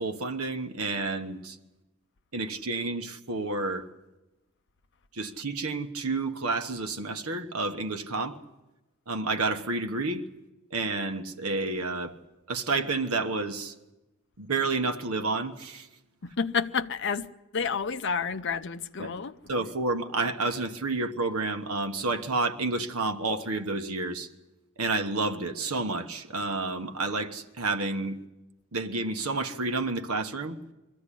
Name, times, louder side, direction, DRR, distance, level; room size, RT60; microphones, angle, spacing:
voice 1, 0.0-1.6 2.3-3.9 5.1-8.4 9.1-10.2 10.7-12.1 12.5-13.7 14.4-15.9 19.0-19.1 19.5-24.3 24.8-28.2 28.7-30.6, right 3 dB, 85° right, 1.2 m, -30 dB
voice 2, 16.2-17.3 17.5-19.3, left 5 dB, 55° left, 0.7 m, -29 dB
23.0 x 14.5 x 10.0 m
head